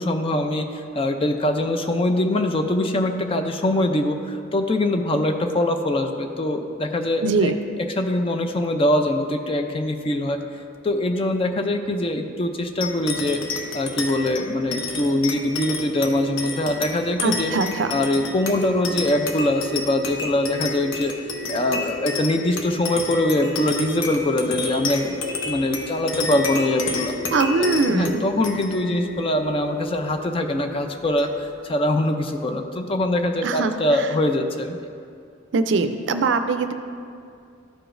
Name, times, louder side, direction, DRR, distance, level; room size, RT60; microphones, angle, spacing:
voice 1, 0.0-7.5 8.0-10.4 10.8-13.4 13.7-17.5 17.9-21.1 21.5-27.1 27.6-34.7, left 1 dB, 30° left, 5 dB, 0.4 m, -23 dB
voice 2, 7.2-7.6 17.2-17.9 27.3-28.2 33.4-33.7 34.0-34.1 35.5-36.7, right 4 dB, 65° right, 8 dB, 0.4 m, -21 dB
sound 1, 12.8-31.6, left 3 dB, 85° left, 0.8 m, -31 dB
12.5 x 4.9 x 2.5 m, 2.4 s
head